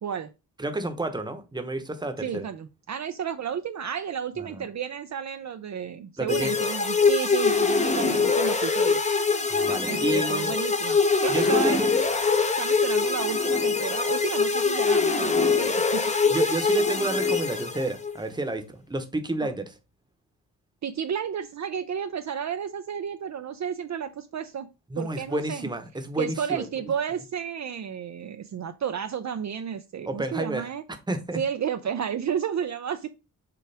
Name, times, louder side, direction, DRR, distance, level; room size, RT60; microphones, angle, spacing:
voice 1, 0.6-2.5 4.4-4.6 6.2-6.5 9.5-10.5 11.3-11.9 16.3-19.7 24.9-26.7 30.1-30.7 31.1-31.4, right 2 dB, 10° right, 1.0 m, -30 dB
voice 2, 2.2-9.0 9.9-11.8 12.5-16.4 19.4-19.5 20.8-24.7 25.0-25.7 26.2-30.8 31.4-33.1, right 8 dB, 50° right, 0.5 m, -32 dB
sound 1, 6.3-18.1, left 4 dB, 20° left, 0.7 m, -23 dB
6.9 x 4.7 x 3.4 m
wide cardioid pair, 145°, 38 cm